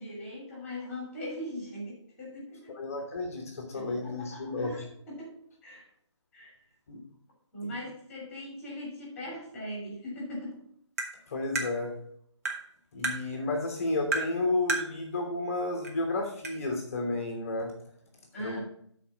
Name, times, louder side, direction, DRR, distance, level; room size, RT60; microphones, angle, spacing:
voice 1, 0.0-2.8 3.7-5.9 6.3-6.6 7.5-10.6 18.3-18.6, equal, 5° left, -4 dB, 2.9 m, -40 dB
voice 2, 2.8-4.7 6.9-7.0 11.3-11.9 12.9-17.7 18.4-18.6, left 2 dB, 30° left, 1 dB, 1.2 m, -31 dB
Tap, 11.0-11.1 11.6-11.7 12.4-12.6 13.0-13.2 14.1-14.3 14.7-14.9 15.8-15.9 16.4-16.5, right 3 dB, 30° right, 1.2 m, -30 dB
11.0 x 4.3 x 4.2 m, 0.66 s
hypercardioid pair, 170°, 15 cm